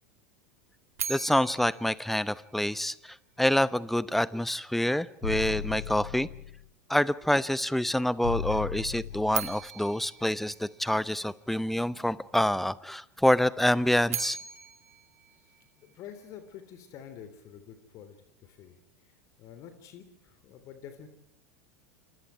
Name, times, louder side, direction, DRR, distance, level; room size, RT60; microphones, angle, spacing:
sound 1, 1.0-3.1 9.3-11.5 13.8-16.2, right 8 dB, 65° right, 2.1 m, -39 dB
voice 1, 1.1-6.3 6.9-14.4, left 1 dB, ahead, 20 dB, 0.9 m, -27 dB
sound 2, 5.2-6.7 8.2-9.7, left 7 dB, 75° left, 1.2 m, -36 dB
voice 2, 15.3-18.8 19.0-21.1, left 9 dB, 40° left, 9 dB, 3.5 m, -48 dB
29.0 x 27.5 x 4.6 m, 0.72 s
figure-of-eight pair, 80°, 8 cm